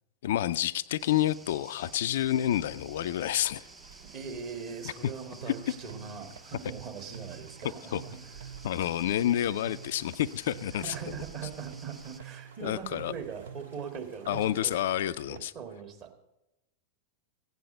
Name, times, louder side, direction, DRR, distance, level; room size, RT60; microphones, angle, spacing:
voice 1, 0.2-3.6 7.9-8.0 8.6-10.9 12.6-13.1 14.3-15.5, left 12 dB, 55° left, 13 dB, 0.3 m, -29 dB
sound 1, 1.0-12.2, right 3 dB, 10° right, 0.5 m, -53 dB
sound 2, 2.9-14.9, right 6 dB, 80° right, 2.4 m, -56 dB
voice 2, 4.0-8.2 10.7-15.0 15.3-16.1, right 6 dB, 40° right, 3 dB, 1.9 m, -41 dB
sound 3, 5.4-15.4, right 8 dB, 60° right, 0.4 m, -48 dB
15.5 x 9.4 x 5.4 m, 0.93 s
figure-of-eight pair, 90°, 0 cm